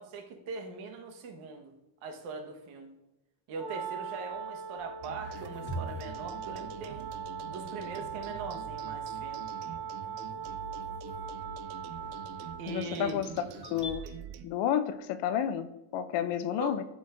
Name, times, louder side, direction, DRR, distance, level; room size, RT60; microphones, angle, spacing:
voice 1, 0.0-1.7 2.0-2.9 3.5-7.1 7.5-9.4 12.6-13.2 14.0-14.1 16.6-16.8, right 4 dB, 85° right, 3 dB, 1.5 m, -41 dB
Wind instrument woodwind instrument, 3.5-12.8, right 6 dB, 20° right, 2.1 m, -40 dB
sound 1, 5.0-14.4, right 8 dB, 55° right, 0.6 m, -45 dB
sound 2, 5.2-13.9, equal, 25° left, 1.0 m, -47 dB
voice 2, 12.7-13.3 13.7-14.0 14.4-16.8, left 10 dB, 65° left, 12 dB, 0.6 m, -30 dB
12.0 x 5.2 x 2.6 m, 0.94 s
cardioid pair, 170°, 47 cm